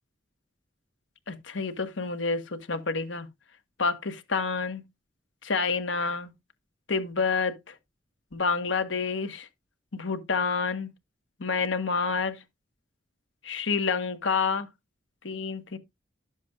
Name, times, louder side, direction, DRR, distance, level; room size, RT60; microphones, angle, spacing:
voice 1, 1.3-3.3 3.8-4.8 5.4-6.3 6.9-7.7 8.3-9.5 9.9-10.9 11.4-12.4 13.4-14.7 15.2-15.8, left 4 dB, 75° left, 1.2 m, -28 dB
12.0 x 7.1 x 2.3 m
head